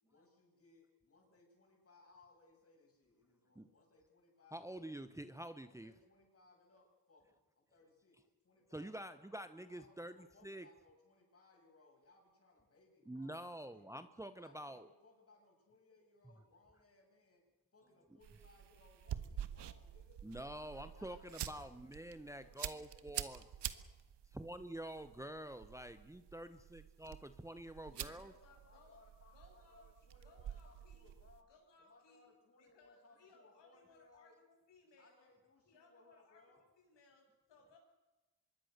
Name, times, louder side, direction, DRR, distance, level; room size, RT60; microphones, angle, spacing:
voice 1, 0.0-4.9 5.6-9.2 9.7-14.0 14.4-17.4 17.7-21.8 22.1-23.9 28.2-31.5 31.8-34.4 35.0-36.6, left 3 dB, 35° left, 1 dB, 7.9 m, -67 dB
voice 2, 4.5-5.9 8.7-10.1 10.4-10.7 13.1-14.9 20.2-23.4 24.3-28.3, right 1 dB, 5° right, 10 dB, 0.9 m, -47 dB
sound 1, 18.2-31.4, right 10 dB, 75° right, 1.5 m, -48 dB
voice 3, 27.8-29.0 29.3-29.9 30.2-31.1 31.5-32.3 32.6-35.3 35.6-37.8, left 3 dB, 75° left, 1 dB, 7.9 m, -66 dB
25.5 x 22.0 x 6.7 m, 1.2 s
cardioid pair, 130°, 42 cm